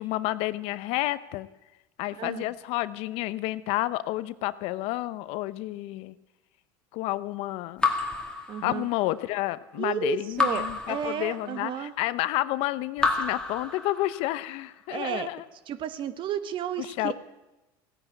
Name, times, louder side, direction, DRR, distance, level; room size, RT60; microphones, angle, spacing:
voice 1, 0.0-1.5 2.0-6.1 6.9-7.9 8.6-15.4 16.8-17.1, left 17 dB, 65° left, 15 dB, 0.7 m, -30 dB
Raindrop / Drip, 7.8-9.2 10.4-11.8 13.0-14.4, left 3 dB, 10° left, 2.1 m, -30 dB
voice 2, 8.5-8.8 9.8-11.9 14.9-15.3 15.7-17.1, right 9 dB, 50° right, 12 dB, 1.2 m, -32 dB
15.5 x 10.0 x 9.0 m, 1.0 s
supercardioid pair, 95°, 11 cm